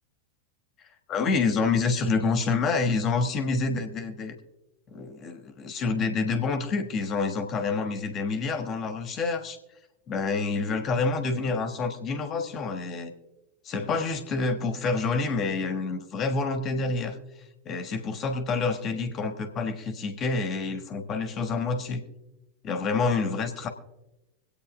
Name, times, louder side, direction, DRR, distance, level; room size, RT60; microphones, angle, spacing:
voice 1, 0.8-4.4 4.9-9.6 10.1-13.1 13.6-17.2 17.6-22.1 22.6-23.7, left 4 dB, 30° left, 6 dB, 1.4 m, -28 dB
24.5 x 8.7 x 2.5 m, 0.97 s
figure-of-eight pair, 90°, 0 cm